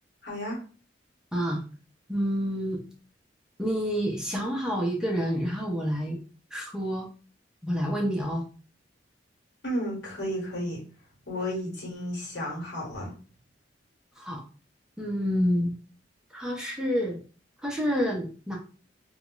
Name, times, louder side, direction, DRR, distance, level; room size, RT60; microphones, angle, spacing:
voice 1, 0.2-0.6 9.6-10.8 11.3-13.1, equal, 65° left, -3 dB, 1.2 m, -32 dB
voice 2, 1.3-1.6 2.1-2.8 3.6-6.2 6.5-7.1 7.6-8.4 14.2-14.4 15.0-15.7 16.3-17.2 17.6-18.6, equal, 5° right, -2 dB, 0.5 m, -28 dB
2.2 x 2.0 x 3.7 m, 0.37 s
head